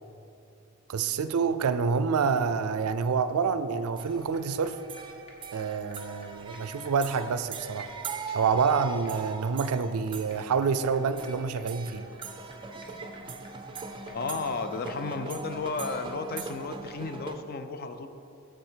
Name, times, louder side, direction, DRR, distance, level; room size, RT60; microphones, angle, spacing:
voice 1, 0.9-4.8 5.5-7.9 8.3-12.1, right 5 dB, 90° right, 12 dB, 0.4 m, -27 dB
sound 1, 4.0-4.1 4.3-4.4 4.6-4.7 5.0-5.1 5.3-5.4 5.6-5.7 5.9-6.0 6.2-6.3 6.5-13.8 14.1-14.2, left 1 dB, 30° left, 1.2 m, -56 dB
sound 2, 4.0-17.4, right 4 dB, 25° right, 0.4 m, -41 dB
voice 2, 14.1-18.1, left 4 dB, 45° left, 8 dB, 0.5 m, -33 dB
8.0 x 6.4 x 4.5 m, 2.6 s
head